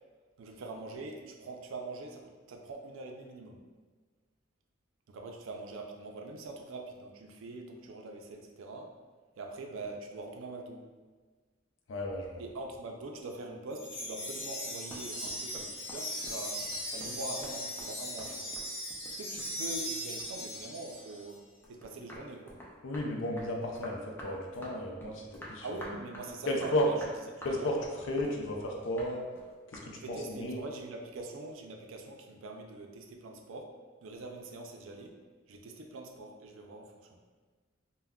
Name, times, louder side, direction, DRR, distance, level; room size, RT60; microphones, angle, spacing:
voice 1, 0.4-3.7 5.1-9.0 9.4-10.9 12.4-18.5 19.1-22.6 25.6-27.1 27.5-27.7 29.9-33.7 34.0-35.2 35.5-37.2, right 2 dB, 85° right, 3 dB, 0.4 m, -43 dB
voice 2, 11.9-12.4 22.8-25.7 26.5-26.9 27.4-29.2 29.7-30.6, left 1 dB, 75° left, 1 dB, 0.5 m, -33 dB
Wind chime, 13.7-21.2, equal, 60° left, 1.1 m, -39 dB
sound 1, 14.6-19.9 20.2-21.3 21.6-29.9, equal, 10° left, 0.4 m, -49 dB
3.5 x 2.1 x 2.2 m, 1.4 s
head